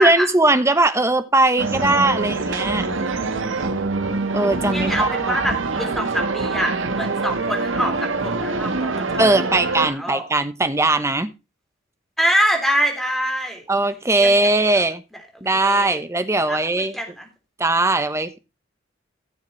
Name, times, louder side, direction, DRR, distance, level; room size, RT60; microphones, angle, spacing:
voice 1, 0.0-2.9 4.3-5.4 9.2-11.3 13.7-15.0 15.4-17.0 17.6-18.4, right 2 dB, 15° right, 11 dB, 0.9 m, -19 dB
sound 1, 1.6-9.9, right 3 dB, 90° right, 1.4 m, -25 dB
voice 2, 4.7-7.9 8.2-9.3 9.9-10.2 12.2-13.6 14.2-14.5 14.7-14.8 15.6-16.0 16.5-17.3, equal, ahead, 2 dB, 3.4 m, -24 dB
15.5 x 7.2 x 3.1 m, 0.28 s
head